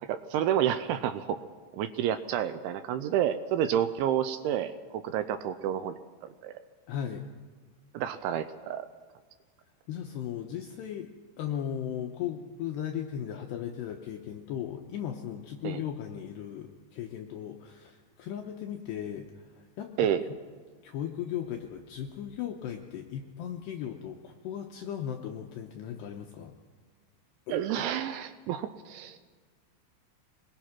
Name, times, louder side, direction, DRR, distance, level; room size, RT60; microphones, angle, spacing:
voice 1, 0.0-1.4 1.7-5.9 6.4-6.5 7.9-8.9 15.6-15.8 20.0-20.2 27.5-29.2, right 10 dB, 80° right, 11 dB, 2.8 m, -29 dB
voice 2, 6.9-7.2 9.9-11.1 11.4-19.9 20.8-26.5 27.5-27.9, left 9 dB, 75° left, 4 dB, 2.5 m, -37 dB
24.0 x 21.0 x 5.9 m, 1.5 s
omnidirectional pair, 5.9 m